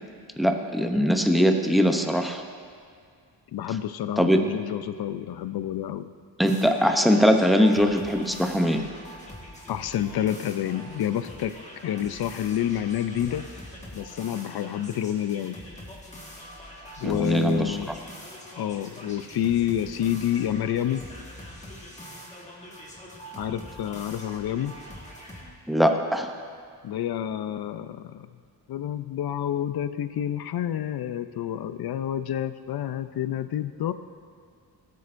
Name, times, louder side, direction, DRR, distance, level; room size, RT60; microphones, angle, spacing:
voice 1, 0.4-2.4 4.2-4.4 6.4-8.8 17.0-17.8 25.7-26.3, equal, ahead, 4 dB, 0.6 m, -21 dB
voice 2, 3.5-6.1 9.7-11.5 11.8-13.5 13.9-15.6 17.0-17.9 18.5-21.0 23.4-24.8 26.8-28.3 28.7-33.9, left 10 dB, 65° left, 12 dB, 0.5 m, -29 dB
sound 1, 6.4-25.5, equal, 15° left, 1.6 m, -43 dB
17.5 x 8.4 x 2.6 m, 2.3 s
wide cardioid pair, 135°, 41 cm